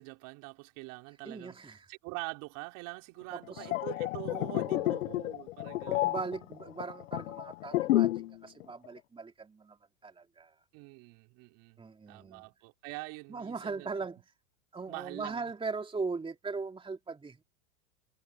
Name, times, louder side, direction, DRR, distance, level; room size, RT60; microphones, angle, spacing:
voice 1, 0.0-6.1 10.7-11.8 12.1-14.1 14.9-15.5, right 26 dB, 55° right, 3.3 m, -44 dB
voice 2, 1.2-1.9 3.3-3.7 4.3-5.0 5.9-9.8 10.0-10.5 11.8-12.4 13.3-14.2 14.7-17.4, right 4 dB, 15° right, 2.7 m, -39 dB
sound 1, 3.4-8.3 8.6-8.9, left 16 dB, 75° left, 0.8 m, -31 dB
hypercardioid pair, 100°, 40 cm